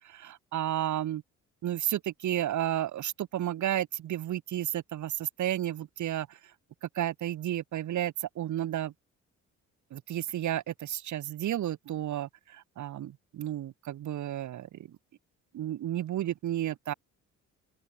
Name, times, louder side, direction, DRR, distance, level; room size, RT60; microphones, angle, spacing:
voice 1, 0.2-1.2 1.6-5.1 5.4-6.3 7.0-8.9 9.9-12.3 12.8-14.7 15.5-16.9, right 12 dB, 70° right, 3.0 m, -32 dB
cardioid pair, 90°, 30 cm